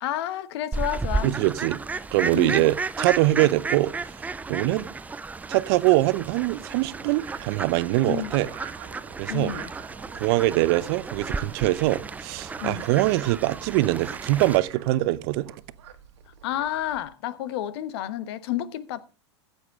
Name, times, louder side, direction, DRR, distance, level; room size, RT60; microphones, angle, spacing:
voice 1, 0.0-1.3 2.3-2.7 4.6-4.9 8.0-8.3 9.3-9.7 12.6-12.8 16.4-19.0, left 12 dB, 65° left, 1.1 m, -30 dB
Fowl, 0.7-14.6, right 3 dB, 10° right, 0.5 m, -33 dB
voice 2, 1.2-1.8 2.1-3.9 4.5-4.9 5.5-8.5 9.2-9.5 10.1-15.5, right 18 dB, 55° right, 0.8 m, -23 dB
Frog, 6.8-17.1, right 10 dB, 70° right, 1.7 m, -45 dB
14.5 x 8.2 x 3.7 m
hypercardioid pair, 105°, 15 cm